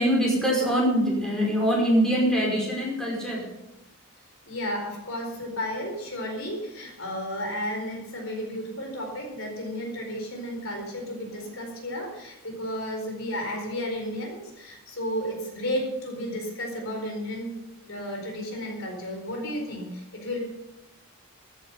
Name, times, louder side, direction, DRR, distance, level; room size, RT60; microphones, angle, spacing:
voice 1, 0.0-3.5, equal, 5° left, -4 dB, 5.3 m, -23 dB
voice 2, 4.5-17.5 17.9-20.4, equal, 65° left, 2 dB, 4.4 m, -33 dB
15.0 x 11.0 x 5.7 m, 0.93 s
head